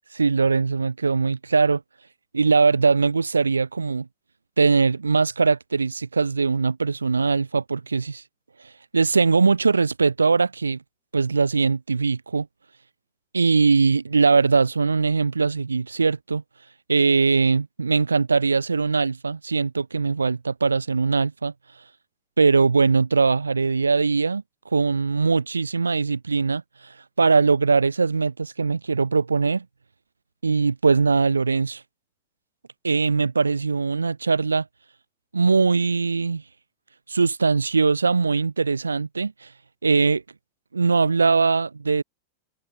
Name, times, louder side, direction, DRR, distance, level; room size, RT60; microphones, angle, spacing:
voice 1, 0.1-1.8 2.3-4.1 4.6-8.2 8.6-10.8 11.1-12.5 13.3-16.4 16.9-21.5 22.4-29.6 30.4-31.8 32.8-34.7 35.3-36.4 37.1-39.5 39.8-40.2 40.7-42.0, right 4 dB, 75° right, 6.0 m, -21 dB
figure-of-eight pair, 90°, 0 cm